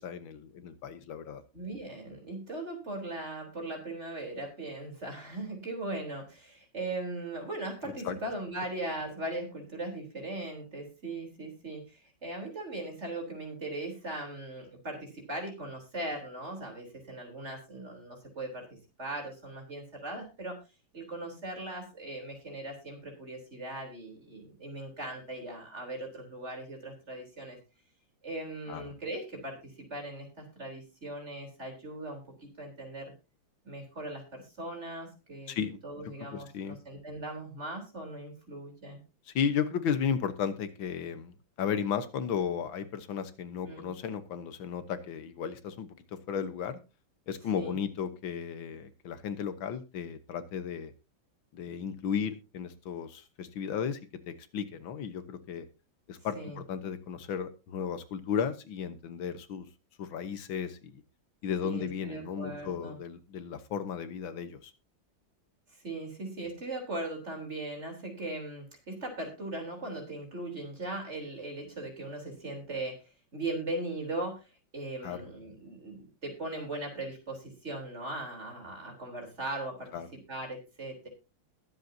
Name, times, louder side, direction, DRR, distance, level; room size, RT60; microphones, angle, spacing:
voice 1, 0.0-1.4 8.1-8.2 28.7-28.9 35.5-35.8 36.3-36.8 39.3-46.0 46.3-46.8 47.3-50.9 51.5-54.0 54.3-55.7 56.1-59.7 60.0-61.0 61.4-64.7 75.0-75.2 79.9-80.1, left 7 dB, 90° left, 11 dB, 1.9 m, -34 dB
voice 2, 1.5-20.6 20.9-27.6 28.2-33.1 33.6-35.5 35.8-39.0 43.7-43.9 47.5-47.7 56.3-56.6 61.6-63.0 65.7-73.0 73.3-81.1, right 2 dB, 35° right, 2 dB, 4.0 m, -39 dB
21.0 x 8.0 x 2.8 m, 0.28 s
omnidirectional pair, 2.1 m